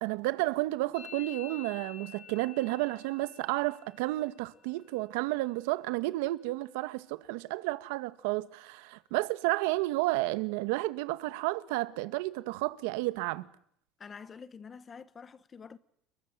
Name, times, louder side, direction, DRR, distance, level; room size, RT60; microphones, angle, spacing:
voice 1, 0.0-13.5, right 19 dB, 85° right, 1.7 m, -31 dB
Musical instrument, 0.9-8.6 8.8-9.4 9.7-10.3 10.5-12.6, left 8 dB, 50° left, 4.8 m, -54 dB
voice 2, 14.0-15.8, left 6 dB, 20° left, 1.2 m, -47 dB
30.0 x 22.0 x 7.7 m
cardioid pair, 175°, 0 cm